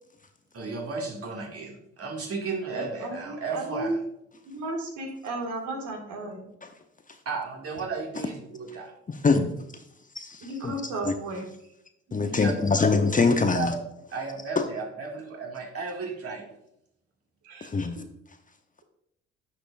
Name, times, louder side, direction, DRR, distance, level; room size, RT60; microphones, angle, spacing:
voice 1, 0.5-4.0 7.3-8.9 12.3-12.5 13.5-13.7 14.1-16.5, right 4 dB, 45° right, 1 dB, 2.2 m, -34 dB
voice 2, 2.7-3.9 4.5-6.5 10.4-11.5 12.1-12.4 17.4-17.7, right 2 dB, 60° right, 2 dB, 2.0 m, -34 dB
voice 3, 9.1-9.5 10.6-10.7 11.0-11.1 12.1-13.8 14.6-14.7 17.6-18.0, left 4 dB, 25° left, 7 dB, 0.9 m, -23 dB
10.0 x 6.6 x 2.5 m, 0.78 s
hypercardioid pair, 50°, 34 cm